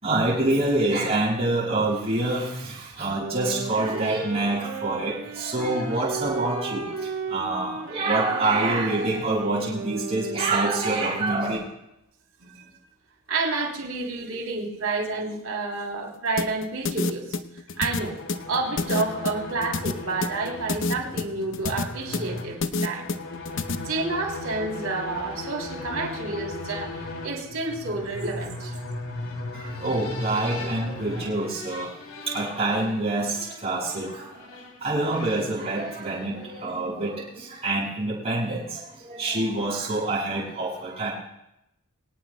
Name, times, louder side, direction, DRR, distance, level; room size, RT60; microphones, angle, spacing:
voice 1, 0.0-11.6 29.5-31.9 32.3-41.1, right 2 dB, 30° right, -9 dB, 6.4 m, -26 dB
sound 1, 3.2-11.4, right 4 dB, 60° right, 3.0 m, -35 dB
voice 2, 12.4-12.7 13.3-17.4 17.8-18.2 18.5-23.1 23.8-28.8, right 3 dB, 75° right, 0 dB, 3.1 m, -29 dB
sound 2, 16.4-23.8, left 3 dB, 60° left, 0.8 m, -28 dB
sound 3, 17.7-36.7, left 2 dB, 80° left, 2.8 m, -38 dB
24.0 x 18.0 x 2.2 m, 0.84 s
head